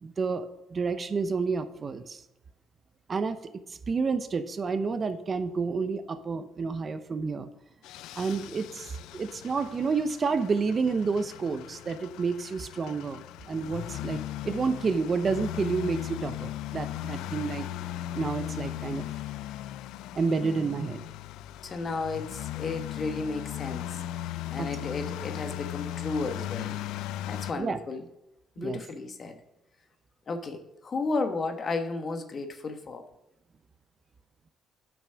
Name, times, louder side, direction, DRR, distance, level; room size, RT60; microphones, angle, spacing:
voice 1, 0.0-2.2 3.1-3.4 3.7-7.5 8.2-13.2 13.5-17.7 18.1-19.0 20.1-21.0 24.6-24.7 27.5-27.8 28.6-28.8, right 4 dB, 35° right, 10 dB, 0.8 m, -29 dB
sound 1, 7.8-27.5, left 13 dB, 85° left, 0.3 m, -38 dB
voice 2, 20.4-20.9 21.6-24.0 24.5-26.8 27.3-28.0 28.6-29.4 30.3-33.0, left 3 dB, 40° left, 7 dB, 1.2 m, -33 dB
8.8 x 6.2 x 5.8 m, 0.94 s
cardioid pair, 95°, 0 cm